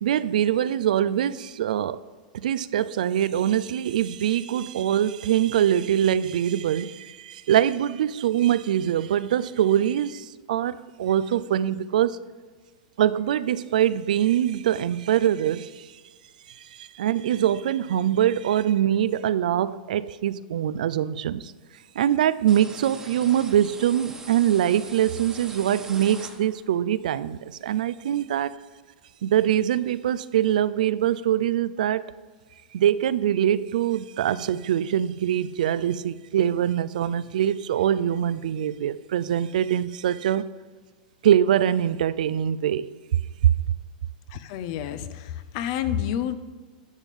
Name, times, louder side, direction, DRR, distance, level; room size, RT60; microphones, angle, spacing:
voice 1, 0.0-2.0 2.3-12.2 13.0-15.9 16.5-21.5 22.0-28.6 29.2-32.0 32.7-40.4 41.2-43.2, right 10 dB, 75° right, 0.3 m, -23 dB
sound 1, 22.5-26.8, right 3 dB, 10° right, 1.1 m, -42 dB
voice 2, 44.3-46.3, left 10 dB, 55° left, 0.6 m, -29 dB
10.5 x 7.4 x 3.6 m
hypercardioid pair, 110°, 4 cm